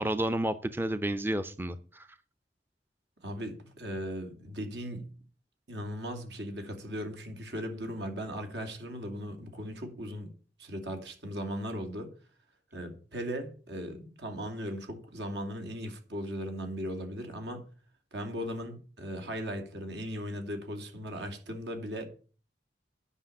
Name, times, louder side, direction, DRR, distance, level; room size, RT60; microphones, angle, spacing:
voice 1, 0.0-2.1, right 1 dB, 10° right, 0.5 m, -31 dB
voice 2, 3.2-5.1 5.7-10.3 10.6-12.1 12.7-17.6 18.1-22.1, equal, 75° right, 2.6 m, -38 dB
10.0 x 5.9 x 8.5 m
head